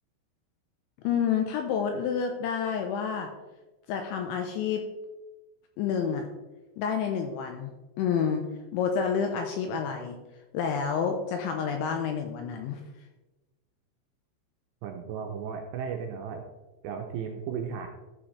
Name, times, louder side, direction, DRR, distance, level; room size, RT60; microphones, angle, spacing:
voice 1, 1.0-3.3 3.9-4.8 5.8-6.3 6.8-7.7 8.0-8.4 8.7-10.2 10.5-12.8, left 7 dB, 80° left, 4 dB, 2.8 m, -29 dB
voice 2, 14.8-16.4 16.8-17.9, right 7 dB, 80° right, 2 dB, 2.6 m, -35 dB
14.0 x 6.0 x 3.2 m, 1.1 s
omnidirectional pair, 5.8 m